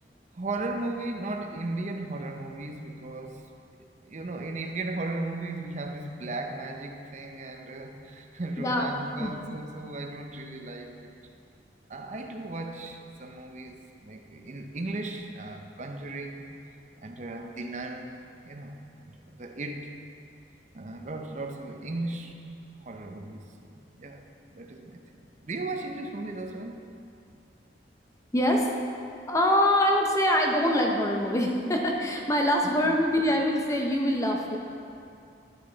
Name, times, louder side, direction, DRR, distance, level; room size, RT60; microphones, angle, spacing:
voice 1, 0.3-3.5 3.8-11.1 11.9-16.5 17.0-18.2 18.4-19.9 20.7-22.4 22.7-24.3 24.5-25.0 25.4-26.9 32.8-33.0, right 2 dB, 40° right, 4 dB, 0.6 m, -36 dB
voice 2, 8.6-8.9 9.2-9.3 28.3-28.7 29.3-34.6, left 1 dB, 20° left, 1 dB, 0.7 m, -24 dB
11.0 x 6.6 x 3.9 m, 2.5 s
head